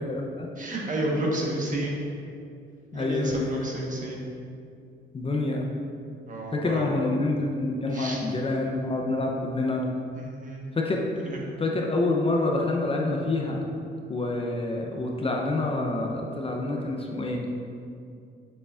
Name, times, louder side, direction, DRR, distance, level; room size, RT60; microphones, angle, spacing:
voice 1, 0.0-0.5 2.9-3.7 5.1-5.7 6.5-9.8 10.7-11.0 11.6-13.6 14.1-17.4, left 2 dB, 30° left, 0 dB, 0.7 m, -27 dB
voice 2, 0.6-1.9 2.9-4.2 6.3-6.9 7.9-8.2 10.2-10.6 11.2-11.4, right 1 dB, 40° right, -2 dB, 1.3 m, -30 dB
6.8 x 6.6 x 2.5 m, 2.4 s
cardioid pair, 90°, 20 cm